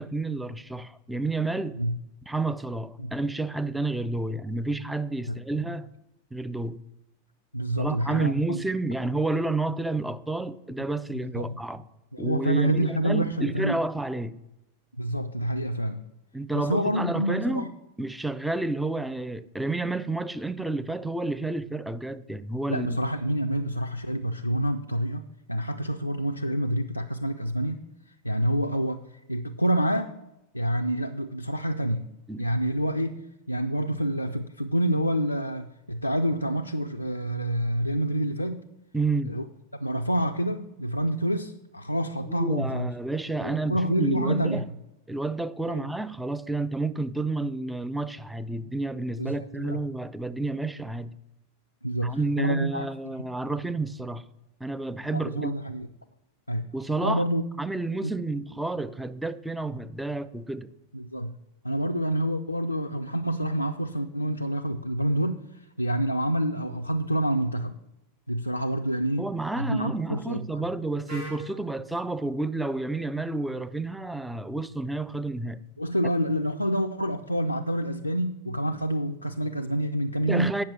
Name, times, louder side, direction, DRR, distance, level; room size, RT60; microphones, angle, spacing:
voice 1, 0.0-1.8 2.3-5.9 6.3-6.8 7.8-11.8 12.2-14.4 16.3-17.7 18.0-23.0 32.3-32.5 38.9-39.4 42.3-44.7 45.1-51.2 52.0-54.3 54.6-55.5 56.7-57.2 57.6-60.7 69.2-75.6 80.3-80.6, right 2 dB, 5° right, 0.4 m, -30 dB
voice 2, 7.5-8.6 11.1-11.6 12.1-13.8 15.0-16.0 16.5-17.7 22.7-27.9 28.2-30.1 30.5-32.1 32.4-38.6 39.3-39.4 39.7-42.9 43.4-44.6 45.7-45.9 49.2-49.8 51.8-53.1 53.4-53.5 55.1-55.9 56.5-56.7 57.0-57.4 58.0-58.1 60.9-61.3 61.6-65.4 65.8-67.7 68.3-69.3 69.6-70.6 75.8-80.5, right 1 dB, 90° left, 0.4 m, -27 dB
Wind instrument woodwind instrument, 71.1-74.9, right 1 dB, 65° right, 3.9 m, -45 dB
8.6 x 6.0 x 6.0 m
figure-of-eight pair, 90°, 0 cm